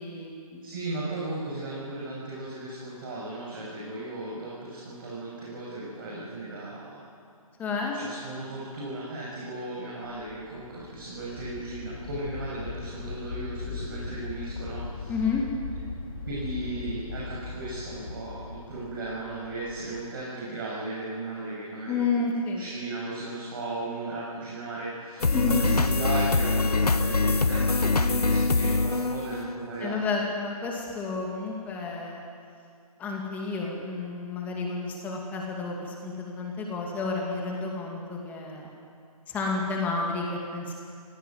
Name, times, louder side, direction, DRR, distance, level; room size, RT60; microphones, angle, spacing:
voice 1, 0.0-0.6 7.6-8.0 15.1-15.4 21.9-22.6 25.3-25.7 29.8-32.2 33.0-38.7 39.3-40.7, left 4 dB, 10° left, -1 dB, 2.4 m, -30 dB
voice 2, 0.6-7.0 7.9-15.1 16.3-22.1 22.5-30.0, right 2 dB, 35° right, -5 dB, 7.2 m, -36 dB
sound 1, 10.1-20.0, left 4 dB, 35° left, 3.4 m, -39 dB
sound 2, 25.2-29.9, left 3 dB, 85° left, 1.4 m, -24 dB
24.5 x 17.5 x 9.5 m, 2.4 s
figure-of-eight pair, 160°, 19 cm